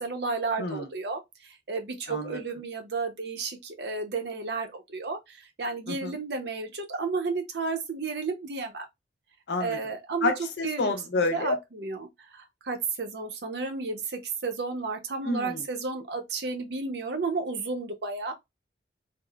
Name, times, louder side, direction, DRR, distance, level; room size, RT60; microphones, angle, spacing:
voice 1, 0.0-8.9 9.6-10.3 10.6-11.0 11.3-18.3, right 4 dB, 70° right, 0.6 m, -32 dB
voice 2, 2.1-2.4 5.9-6.2 9.5-9.8 10.2-11.6 15.2-15.6, left 2 dB, 80° left, 0.7 m, -29 dB
3.6 x 2.0 x 2.2 m
head